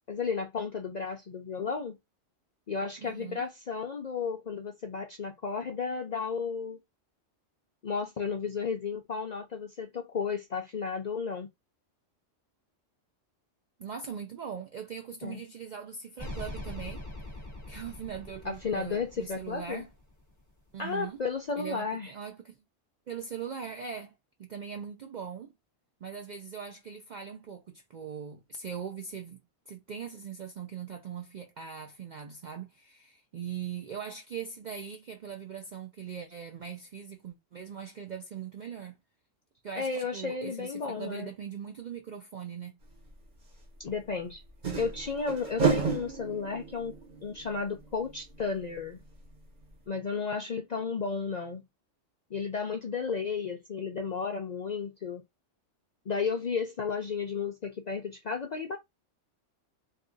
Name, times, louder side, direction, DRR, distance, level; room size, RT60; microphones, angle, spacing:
voice 1, 0.1-2.0 2.7-6.8 7.8-11.5 15.2-15.4 18.4-19.9 20.8-22.1 39.8-41.3 43.8-44.4 44.8-46.9 47.2-49.0 49.9-51.6 52.3-55.2 56.1-58.8, left 5 dB, 60° left, 0.4 m, -33 dB
voice 2, 3.1-3.5 13.8-17.0 17.3-19.9 20.7-21.2 21.6-22.6 23.1-24.1 24.4-25.5 26.0-29.4 29.7-39.0 39.6-42.8, right 7 dB, 65° right, 0.4 m, -41 dB
sound 1, 16.2-20.5, left 1 dB, 20° right, 0.6 m, -43 dB
sound 2, 43.1-43.2 44.5-49.0 49.3-49.4 49.7-49.8, right 5 dB, 40° right, 1.0 m, -32 dB
2.7 x 2.5 x 3.7 m
omnidirectional pair, 1.3 m